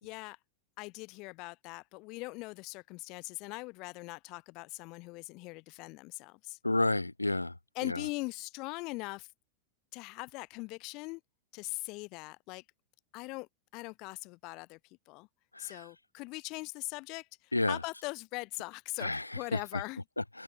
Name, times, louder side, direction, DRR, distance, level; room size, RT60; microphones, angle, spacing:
voice 1, 0.0-0.4 0.8-6.6 7.8-9.3 9.9-11.2 11.5-12.6 13.1-15.3 15.6-20.0, left 25 dB, 40° left, 0.3 m, -41 dB
voice 2, 6.6-7.6 7.8-8.1 15.5-15.9 17.5-17.8 19.0-19.8 20.2-20.4, left 2 dB, 85° left, 0.6 m, -31 dB
figure-of-eight pair, 90°, 0 cm